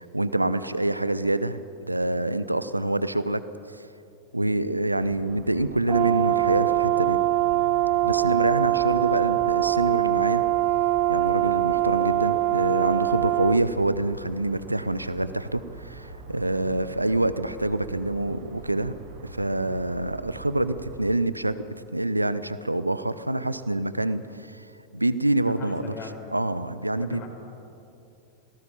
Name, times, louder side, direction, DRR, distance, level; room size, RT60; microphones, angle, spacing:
voice 1, 0.0-3.4 4.3-7.2 8.0-10.4 11.1-18.9 19.2-24.6 24.9-25.9 26.3-27.2, right 1 dB, 85° right, 14 dB, 0.8 m, -26 dB
sound 1, 5.0-21.0, right 3 dB, 55° right, 4.2 m, -43 dB
Brass instrument, 5.9-13.6, right 15 dB, 40° right, 0.6 m, -23 dB
voice 2, 25.4-26.3 26.9-27.3, left 5 dB, 40° left, 2 dB, 5.3 m, -39 dB
27.0 x 18.5 x 7.2 m, 2.6 s
figure-of-eight pair, 90°, 0 cm